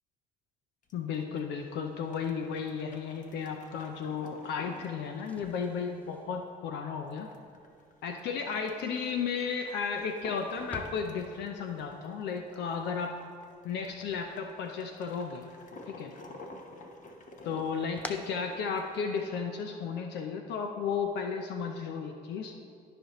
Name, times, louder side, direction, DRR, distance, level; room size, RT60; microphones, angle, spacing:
sound 1, 0.8-19.3, left 2 dB, 45° left, 1.0 m, -52 dB
voice 1, 0.9-7.3 8.0-13.1 13.6-15.5 15.9-16.1 17.4-22.5, left 6 dB, 70° left, 4 dB, 0.6 m, -34 dB
sound 2, 5.2-15.1 15.4-16.2 16.6-19.2, left 1 dB, 5° left, 0.6 m, -51 dB
13.5 x 5.0 x 3.1 m, 2.4 s
supercardioid pair, 75°, 18 cm